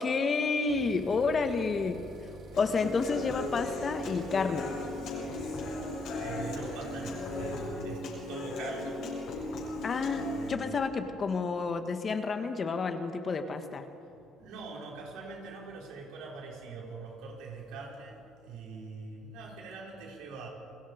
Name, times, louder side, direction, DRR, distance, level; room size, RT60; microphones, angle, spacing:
voice 1, 0.0-2.0 2.6-4.7 9.8-13.9, left 4 dB, 35° left, 8 dB, 1.6 m, -30 dB
sound 1, 0.7-7.7, right 3 dB, 50° right, 3.4 m, -48 dB
Human voice / Acoustic guitar, 2.5-10.5, left 2 dB, 65° left, 7.0 m, -37 dB
voice 2, 6.1-9.1 10.1-10.7 14.4-20.5, right 4 dB, 80° right, -2 dB, 5.6 m, -43 dB
29.5 x 20.0 x 5.2 m, 2.6 s
cardioid pair, 110°, 0 cm